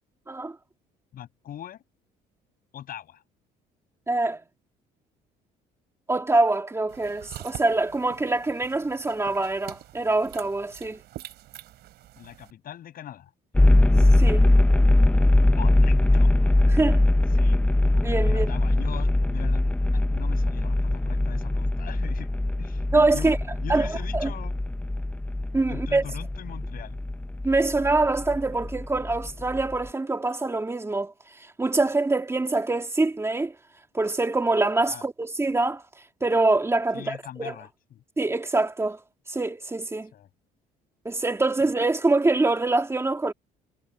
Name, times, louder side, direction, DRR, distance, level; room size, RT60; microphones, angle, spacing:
voice 1, 1.1-1.8 2.7-3.2 12.2-13.3 15.5-16.5 17.3-17.6 18.3-19.6 19.9-22.3 22.6-24.5 25.7-27.0 34.9-35.0 36.9-38.0 40.1-40.3, left 11 dB, 60° left, 6.8 m, -41 dB
voice 2, 4.1-4.4 6.1-11.0 14.2-14.5 16.7-17.0 17.9-18.5 22.9-23.4 23.7-24.3 25.5-26.0 27.4-31.1 31.6-33.6 33.9-35.8 36.2-37.5 38.2-39.0 39.3-40.1 41.0-43.3, right 2 dB, 15° right, 2.5 m, -24 dB
sound 1, 6.9-12.5, right 14 dB, 75° right, 4.9 m, -45 dB
sound 2, 13.5-29.9, left 1 dB, 10° left, 1.0 m, -22 dB
cardioid pair, 110°, 17 cm